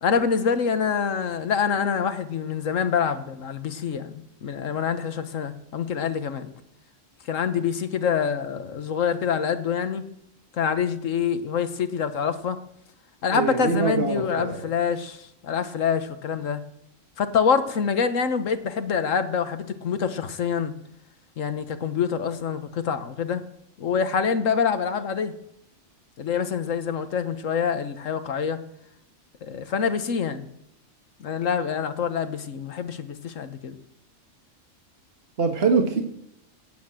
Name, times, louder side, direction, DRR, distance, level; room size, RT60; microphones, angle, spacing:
voice 1, 0.0-6.5 7.3-10.0 10.5-12.6 13.2-16.6 17.2-20.7 21.4-23.4 23.8-25.3 26.2-28.6 29.4-30.5 31.2-33.7, left 6 dB, 75° left, 10 dB, 1.5 m, -26 dB
voice 2, 13.3-14.7 35.4-36.0, right 4 dB, 50° right, 3 dB, 1.7 m, -24 dB
18.0 x 9.4 x 7.7 m, 0.79 s
omnidirectional pair, 1.4 m